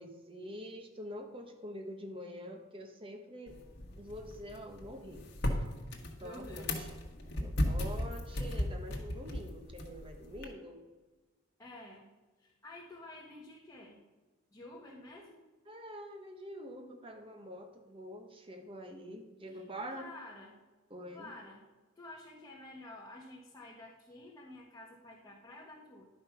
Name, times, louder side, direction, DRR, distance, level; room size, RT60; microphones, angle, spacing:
voice 1, 0.0-3.6 4.0-5.6 6.2-6.9 7.4-10.8 15.7-20.1 20.9-21.3, equal, 25° right, 4 dB, 1.1 m, -46 dB
sound 1, 3.5-10.5, left 1 dB, 55° left, 1.4 m, -37 dB
voice 2, 6.2-6.8 11.6-12.1 12.4-14.0 14.5-15.4 19.5-19.6 19.9-20.6 21.1-21.6 21.9-26.1, left 2 dB, 15° left, -5 dB, 1.3 m, -50 dB
11.0 x 5.4 x 5.9 m, 1.2 s
head